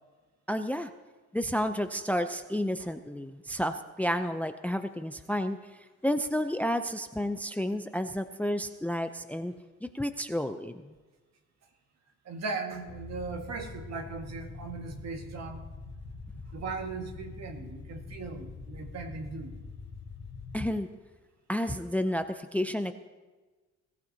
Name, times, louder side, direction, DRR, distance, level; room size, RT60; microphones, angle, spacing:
voice 1, 0.5-0.9 1.3-5.6 6.0-9.5 9.8-11.0 20.5-20.9 21.5-22.9, equal, 5° left, 9 dB, 0.6 m, -31 dB
voice 2, 12.3-15.6 16.5-19.6, right 4 dB, 60° right, 4 dB, 1.9 m, -38 dB
sound 1, 12.9-20.6, left 3 dB, 35° left, 1.5 m, -44 dB
21.0 x 14.5 x 2.9 m, 1.3 s
cardioid pair, 90°, 30 cm